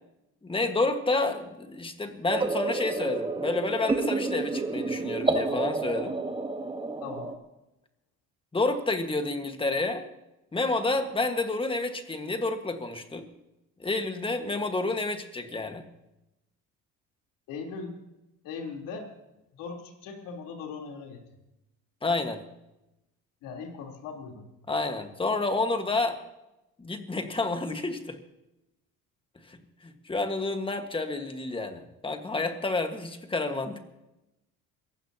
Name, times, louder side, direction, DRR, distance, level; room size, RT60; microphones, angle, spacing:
voice 1, 0.4-6.2 8.5-10.1 10.5-13.3 13.8-15.8 22.0-22.4 24.7-26.2 26.8-28.2 29.5-29.6 29.8-33.9, left 3 dB, 15° left, 6 dB, 1.6 m, -29 dB
sound 1, 2.3-7.3, right 3 dB, 15° right, 1.3 m, -29 dB
voice 2, 7.0-7.3 17.5-17.9 18.4-19.1 19.5-21.2 23.4-24.5, left 5 dB, 75° left, 1 dB, 3.7 m, -39 dB
27.5 x 16.0 x 2.9 m, 0.93 s
cardioid pair, 120°, 33 cm